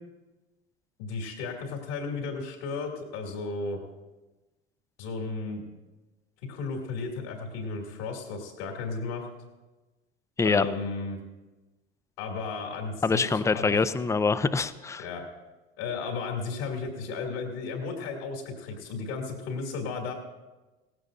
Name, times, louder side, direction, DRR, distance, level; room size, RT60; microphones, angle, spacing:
voice 1, 1.0-3.8 5.0-5.6 6.4-9.3 10.4-11.2 12.2-13.8 15.0-15.2 15.8-20.1, left 4 dB, 75° left, -1 dB, 2.5 m, -34 dB
voice 2, 13.0-15.0, left 4 dB, 10° left, 13 dB, 0.5 m, -25 dB
17.5 x 15.5 x 2.5 m, 1.2 s
hypercardioid pair, 75°, 30 cm